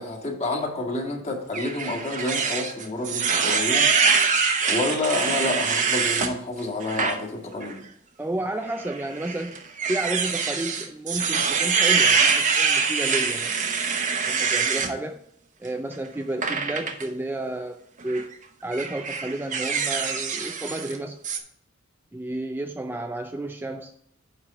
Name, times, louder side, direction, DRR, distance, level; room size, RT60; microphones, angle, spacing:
voice 1, 0.0-3.9 4.7-7.8, left 2 dB, 35° left, 0 dB, 1.9 m, -29 dB
sound 1, 1.5-6.3 6.8-7.2 7.6-7.7 8.8-14.9 16.4-17.0 18.0-18.2 18.7-21.0 21.2-21.4, right 5 dB, 40° right, 0.8 m, -24 dB
voice 2, 8.2-9.6 9.9-13.6 14.2-15.2 15.6-17.8 18.0-18.3 18.6-21.2 22.1-23.9, right 1 dB, 10° right, 6 dB, 0.4 m, -31 dB
9.5 x 3.7 x 5.4 m, 0.72 s
head